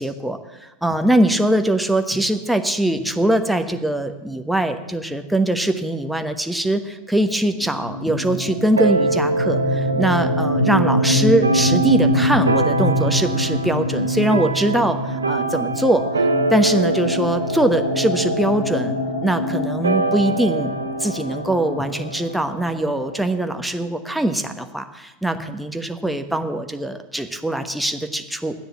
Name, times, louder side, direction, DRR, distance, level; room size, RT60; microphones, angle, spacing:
voice 1, 0.0-20.7 21.0-28.5, right 1 dB, 5° right, 7 dB, 1.2 m, -22 dB
sound 1, 7.5-23.2, left 1 dB, 60° left, 4.9 m, -24 dB
sound 2, 8.8-23.5, right 3 dB, 85° right, 0.8 m, -25 dB
11.5 x 9.7 x 8.3 m, 1.1 s
figure-of-eight pair, 90°, 0 cm